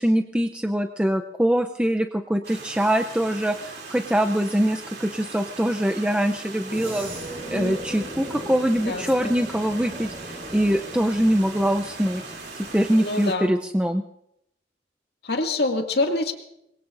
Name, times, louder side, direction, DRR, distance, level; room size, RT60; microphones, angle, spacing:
voice 1, 0.0-7.1 7.5-12.2 12.6-14.0, equal, 5° right, 4 dB, 0.5 m, -23 dB
Stream, 2.4-13.3, right 4 dB, 65° right, 3.0 m, -40 dB
sound 1, 6.7-12.9, equal, 40° right, 6.1 m, -38 dB
voice 2, 8.9-9.3 12.9-13.5 15.2-16.3, left 2 dB, 65° left, 3 dB, 2.2 m, -26 dB
25.5 x 21.5 x 2.6 m, 0.79 s
head